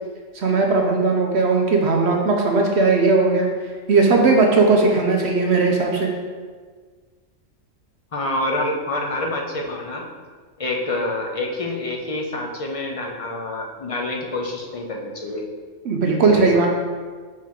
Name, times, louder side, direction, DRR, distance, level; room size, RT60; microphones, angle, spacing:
voice 1, 0.3-3.5 3.9-6.1 15.8-16.7, right 3 dB, 60° right, 1 dB, 0.9 m, -18 dB
voice 2, 8.1-10.1 10.6-15.4 16.2-16.6, left 2 dB, 45° left, 1 dB, 0.4 m, -27 dB
5.4 x 5.1 x 3.7 m, 1.5 s
omnidirectional pair, 1.4 m